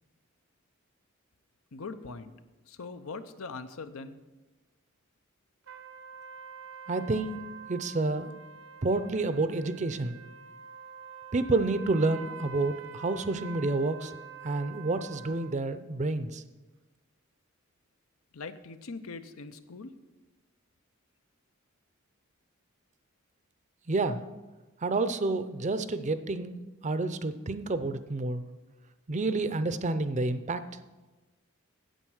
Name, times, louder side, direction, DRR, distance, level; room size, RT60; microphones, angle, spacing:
voice 1, 1.7-2.3 2.7-4.2 18.3-19.9, left 4 dB, 90° left, 10 dB, 0.7 m, -41 dB
sound 1, 5.7-15.6, right 6 dB, 80° right, 1.0 m, -46 dB
voice 2, 6.9-7.4 7.7-8.3 8.8-10.2 11.3-14.1 14.4-16.4 23.9-24.2 24.8-26.6 26.8-28.4 29.1-30.6, right 3 dB, 35° right, 12 dB, 0.5 m, -29 dB
9.1 x 8.2 x 6.3 m, 1.2 s
head